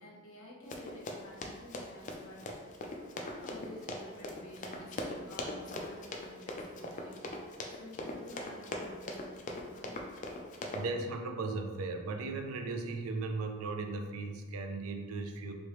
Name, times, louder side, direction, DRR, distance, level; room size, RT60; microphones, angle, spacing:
voice 1, 0.0-2.7 3.1-7.5 7.8-10.1, left 1 dB, 75° left, -4 dB, 0.9 m, -51 dB
Run, 0.7-10.8, left 1 dB, 35° left, 0.3 m, -41 dB
voice 2, 10.7-15.5, right 3 dB, 80° right, 5 dB, 0.4 m, -37 dB
3.1 x 2.8 x 2.9 m, 1.5 s
head